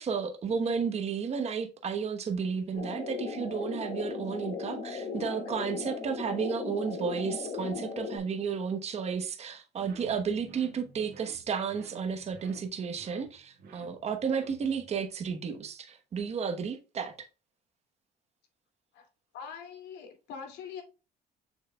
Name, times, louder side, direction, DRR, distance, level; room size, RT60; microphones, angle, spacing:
voice 1, 0.0-17.2, right 6 dB, 40° right, 1.1 m, -32 dB
sound 1, 2.8-8.2, left 4 dB, 55° left, 2.7 m, -37 dB
sound 2, 9.8-14.9, right 5 dB, 60° right, 1.6 m, -53 dB
voice 2, 19.3-20.8, left 6 dB, 85° left, 2.4 m, -43 dB
6.8 x 6.3 x 2.3 m
cardioid pair, 110°, 17 cm